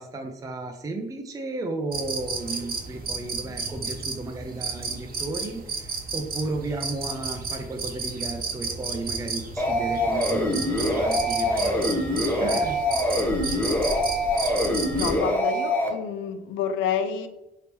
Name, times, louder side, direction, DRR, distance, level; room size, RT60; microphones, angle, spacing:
voice 1, 0.0-12.0 12.4-12.8, right 2 dB, 20° right, 0.4 m, -34 dB
sound 1, 1.9-15.2, right 4 dB, 50° right, 0.7 m, -33 dB
sound 2, 9.6-15.9, left 1 dB, 10° left, 0.8 m, -24 dB
voice 2, 14.9-17.3, left 8 dB, 80° left, 0.4 m, -29 dB
3.5 x 2.8 x 2.9 m
cardioid pair, 90°, 20 cm